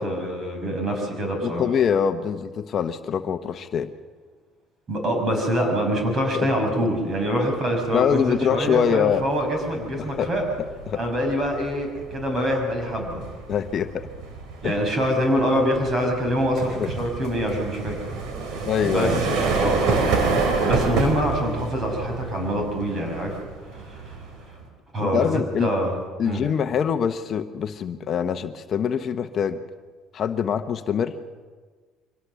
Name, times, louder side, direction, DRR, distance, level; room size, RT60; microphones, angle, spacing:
voice 1, 0.0-1.7 4.9-10.5 10.9-13.3 14.6-18.1 18.5-20.1 20.6-23.4 23.6-24.2 24.5-24.6 24.9-25.9 26.2-26.4, equal, 35° right, 3 dB, 6.1 m, -25 dB
voice 2, 1.4-3.9 6.3-6.5 7.9-9.2 10.0-10.3 10.9-11.0 13.5-14.0 14.6-14.8 16.8-16.9 18.7-19.3 25.0-25.7 26.2-29.6 30.1-31.1, left 7 dB, 45° left, 8 dB, 0.9 m, -24 dB
sound 1, 7.3-7.6 7.9-24.7, right 4 dB, 70° right, 3.5 m, -28 dB
24.5 x 18.0 x 6.9 m, 1.5 s
cardioid pair, 130°, 0 cm